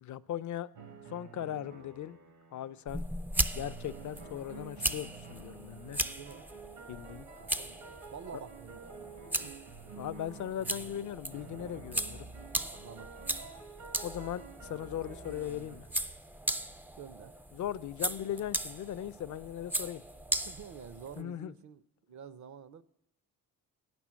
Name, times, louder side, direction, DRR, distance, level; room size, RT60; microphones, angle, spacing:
voice 1, 0.0-0.7 1.1-2.2 2.5-3.0 3.5-6.0 6.9-7.3 10.0-12.3 14.0-15.9 17.5-20.0 21.2-21.5, left 11 dB, 50° left, 0.5 m, -38 dB
sound 1, 0.7-2.8 3.5-15.8, right 5 dB, 80° right, 1.8 m, -50 dB
sound 2, 2.9-21.2, right 1 dB, 5° right, 0.3 m, -38 dB
voice 2, 6.2-6.5 7.4-9.5 9.8-10.1 12.8-13.6 17.0-17.4 18.1-18.2 20.4-22.8, right 7 dB, 50° right, 0.6 m, -49 dB
8.8 x 6.1 x 7.4 m
cardioid pair, 75°, 37 cm